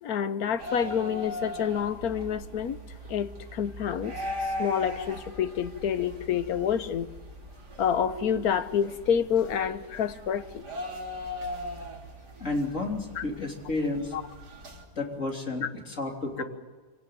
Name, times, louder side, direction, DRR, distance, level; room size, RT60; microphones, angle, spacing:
voice 1, 0.0-2.8 3.1-4.1 4.6-7.1 7.8-10.6 13.1-13.2 14.1-14.2, left 8 dB, 65° left, 12 dB, 1.5 m, -28 dB
sound 1, 0.6-14.8, left 1 dB, 90° right, 3.7 m, -39 dB
voice 2, 12.4-14.1 14.9-16.4, left 2 dB, 50° left, 1 dB, 3.7 m, -31 dB
25.5 x 17.5 x 9.3 m, 1.4 s
omnidirectional pair, 1.7 m